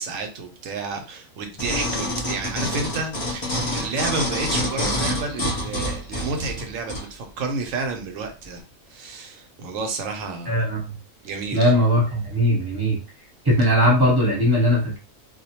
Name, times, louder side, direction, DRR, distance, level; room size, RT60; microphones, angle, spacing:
voice 1, 0.0-8.6 8.9-10.6 11.2-11.7, right 3 dB, 75° right, 4 dB, 0.9 m, -30 dB
sound 1, 1.6-7.1 7.6-7.7, left 1 dB, 30° left, 0.5 m, -27 dB
voice 2, 10.5-10.9 11.5-13.0 13.4-15.0, equal, 20° right, -5 dB, 0.9 m, -19 dB
2.3 x 2.1 x 2.8 m, 0.33 s
omnidirectional pair, 1.5 m